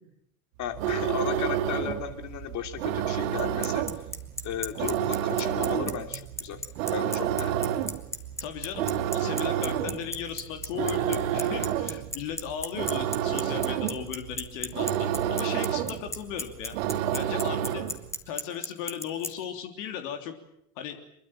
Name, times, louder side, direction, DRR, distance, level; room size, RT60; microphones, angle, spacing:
voice 1, 0.6-3.8 4.4-6.6 6.9-7.5, left 9 dB, 40° left, 7 dB, 2.9 m, -35 dB
sound 1, 0.6-18.1, right 10 dB, 60° right, 1.8 m, -30 dB
Bicycle, 3.4-19.3, left 1 dB, 5° left, 2.3 m, -33 dB
voice 2, 8.4-16.7 17.1-17.9 18.3-20.3 20.8-21.0, left 9 dB, 60° left, 6 dB, 3.3 m, -36 dB
25.0 x 22.5 x 9.0 m, 0.76 s
figure-of-eight pair, 70°, 44 cm